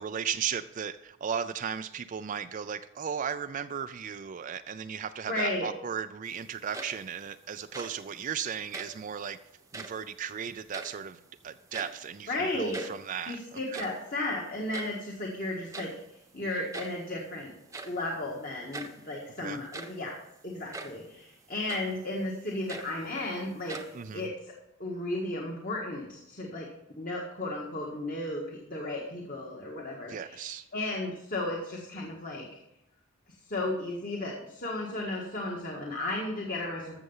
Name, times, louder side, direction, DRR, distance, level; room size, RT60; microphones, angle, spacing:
voice 1, 0.0-9.4 9.7-13.9 19.4-19.6 23.9-24.2 30.1-30.6, right 7 dB, 40° right, 10 dB, 0.4 m, -36 dB
voice 2, 5.2-5.7 12.3-12.9 13.3-17.5 17.8-20.2 20.4-23.8 24.1-24.3 24.8-26.7 27.0-32.5 33.5-37.0, left 2 dB, 40° left, -1 dB, 1.6 m, -34 dB
sound 1, 6.5-7.2 7.6-8.1 8.6-9.1 9.6-10.1 10.5-11.3 11.5-12.2 12.4-12.5 12.7-13.1 13.5-15.1 15.7-16.1 16.7-17.1 17.7-18.1 18.7-19.0 19.5-20.1 20.7-21.1 21.7-22.0 22.4-23.3 23.7-24.3, right 3 dB, 15° right, 0.9 m, -43 dB
14.0 x 6.7 x 5.5 m, 0.85 s
head